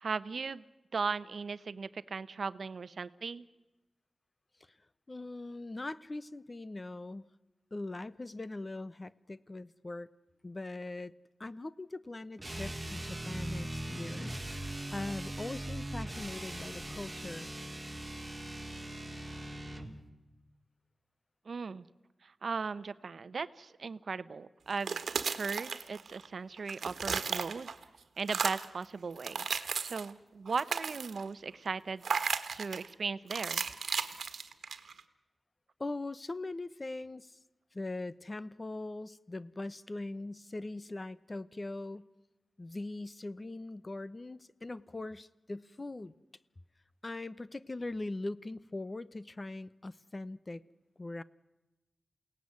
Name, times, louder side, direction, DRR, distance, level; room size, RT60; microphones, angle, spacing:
voice 1, 0.0-0.6 0.9-3.5 21.5-21.8 22.2-25.0 25.2-27.7 28.2-32.0 32.5-33.6, right 5 dB, 65° right, 15 dB, 0.9 m, -37 dB
voice 2, 5.1-7.3 7.7-10.1 10.4-11.1 11.4-17.6 35.8-37.4 37.7-42.1 42.6-46.1 47.0-50.6 51.0-51.2, left 2 dB, 30° left, 17 dB, 0.8 m, -41 dB
sound 1, 12.4-19.9, right 1 dB, 15° right, 2.8 m, -40 dB
sound 2, 24.7-26.3 26.6-27.8 28.2-28.8 29.2-30.1 30.5-31.3 32.0-32.9 33.3-35.0, right 5 dB, 85° right, 1.4 m, -35 dB
28.5 x 18.0 x 9.6 m, 1.0 s
wide cardioid pair, 95°, 0 cm